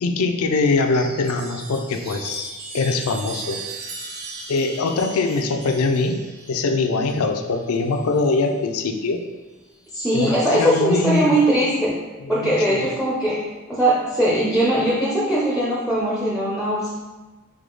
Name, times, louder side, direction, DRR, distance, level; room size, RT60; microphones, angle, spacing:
voice 1, 0.0-3.6 4.5-6.2 6.5-9.2 10.1-11.3 12.2-12.9, left 3 dB, 75° left, 5 dB, 0.4 m, -22 dB
Chime, 0.7-8.5 9.7-10.4, right 3 dB, 50° right, 0.6 m, -38 dB
voice 2, 9.9-12.0 12.3-16.9, right 1 dB, 5° right, -5 dB, 0.5 m, -20 dB
3.6 x 3.5 x 3.8 m, 1.2 s
head